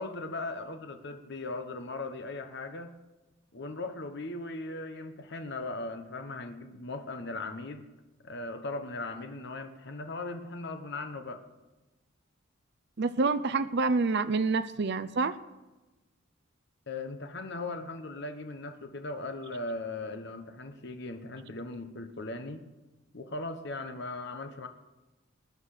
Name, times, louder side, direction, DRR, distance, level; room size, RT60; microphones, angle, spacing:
voice 1, 0.0-2.9 3.5-7.9 8.2-11.4 16.9-22.7 23.1-24.7, left 2 dB, 60° left, 7 dB, 1.2 m, -38 dB
voice 2, 13.0-15.3, right 3 dB, 55° right, 12 dB, 0.6 m, -27 dB
20.0 x 9.8 x 6.7 m, 1.1 s
head